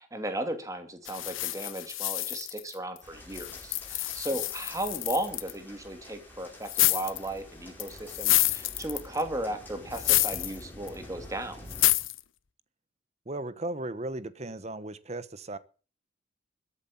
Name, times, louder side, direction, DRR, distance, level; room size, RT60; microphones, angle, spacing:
voice 1, 0.0-11.6, right 1 dB, 15° right, 7 dB, 2.5 m, -35 dB
sound 1, 1.1-3.0 3.3-5.5 6.7-7.3 7.8-9.2 9.9-10.6 10.9-11.0 11.7-12.2, left 17 dB, 90° left, 0.9 m, -28 dB
sound 2, 3.0-11.9, left 1 dB, 10° left, 4.4 m, -48 dB
voice 2, 13.3-15.6, right 2 dB, 35° right, 15 dB, 1.0 m, -36 dB
13.5 x 8.1 x 8.6 m, 0.38 s
head